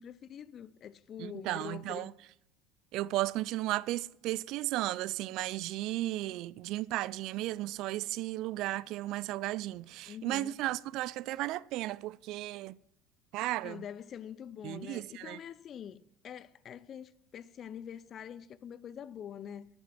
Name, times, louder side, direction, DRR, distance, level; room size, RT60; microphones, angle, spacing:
voice 1, 0.0-2.1 10.1-10.5 13.6-16.0 16.2-19.7, left 9 dB, 45° left, 0.6 m, -45 dB
voice 2, 1.2-2.1 2.9-12.8 13.3-13.8 14.6-15.4, right 16 dB, 60° right, 0.4 m, -34 dB
12.5 x 10.5 x 5.9 m
hypercardioid pair, 65°, 0 cm